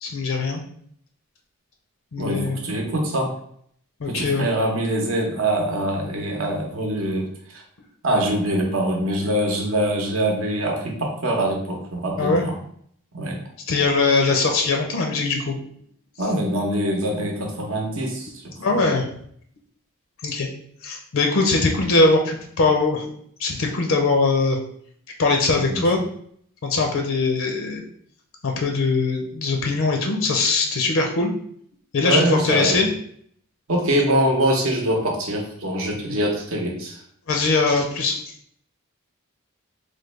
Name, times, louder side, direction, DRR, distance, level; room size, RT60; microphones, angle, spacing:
voice 1, 0.0-0.6 2.1-2.6 4.0-4.5 12.2-12.4 13.7-15.6 18.6-19.0 20.2-20.5 20.8-23.1 23.4-24.6 25.2-26.0 26.6-27.8 28.4-31.3 31.9-32.9 36.1-36.2 37.3-38.1, left 3 dB, 65° left, 2 dB, 0.5 m, -21 dB
voice 2, 2.2-3.3 4.1-7.3 8.0-12.5 13.1-13.4 16.2-18.3 18.7-18.8 25.6-25.7 32.0-32.8 33.7-37.0, right 1 dB, 70° right, 1 dB, 0.8 m, -23 dB
3.3 x 2.2 x 3.2 m, 0.64 s
head